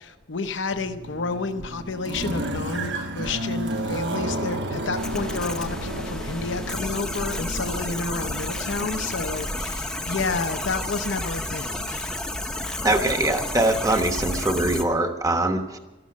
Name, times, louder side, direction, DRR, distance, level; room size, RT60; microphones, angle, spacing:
voice 1, 0.0-12.1, left 4 dB, 70° left, 9 dB, 0.8 m, -30 dB
sound 1, 0.7-9.2, right 1 dB, 60° right, 1.2 m, -32 dB
sound 2, 5.0-14.8, left 1 dB, 5° left, 0.8 m, -31 dB
voice 2, 12.8-15.8, right 2 dB, 15° right, 6 dB, 1.2 m, -23 dB
13.5 x 12.5 x 7.5 m, 1.0 s
head